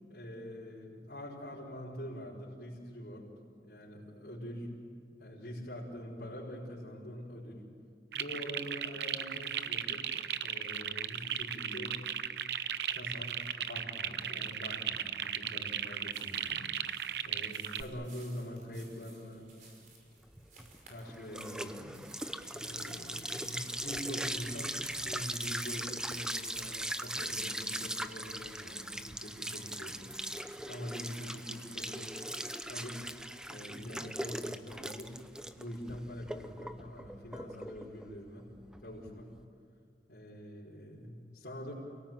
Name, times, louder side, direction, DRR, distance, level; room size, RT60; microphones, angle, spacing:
voice 1, 0.1-3.3 3.6-4.8 5.1-7.7 8.1-10.1 10.4-12.1 12.9-16.7 17.2-19.5 20.9-22.0 22.5-30.2 30.7-32.3 32.6-33.1 33.5-35.2 35.6-38.5 38.8-39.4 40.1-41.7, equal, 65° left, -8 dB, 5.2 m, -44 dB
sound 1, 8.1-17.8, right 9 dB, 75° right, 0.8 m, -36 dB
sound 2, 16.0-30.8, right 3 dB, 45° right, 5.5 m, -60 dB
sound 3, 20.3-39.4, right 1 dB, 5° right, 0.7 m, -40 dB
29.0 x 18.0 x 9.2 m, 2.4 s
head